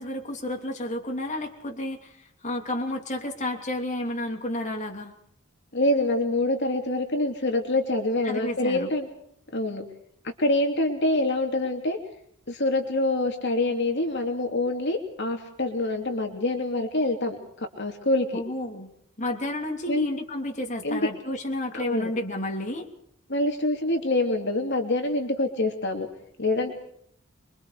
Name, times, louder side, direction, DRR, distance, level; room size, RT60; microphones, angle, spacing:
voice 1, 0.0-2.2 2.4-5.1 8.2-8.9 18.3-18.9 19.2-22.9, left 1 dB, 35° left, 2 dB, 3.2 m, -31 dB
voice 2, 5.7-9.1 9.5-9.8 10.4-12.0 12.5-17.4 17.8-18.4 19.9-20.1 20.8-21.1 21.7-22.1 23.3-26.1 26.4-26.7, left 2 dB, 55° left, 4 dB, 3.0 m, -25 dB
27.0 x 23.5 x 4.9 m, 0.69 s
head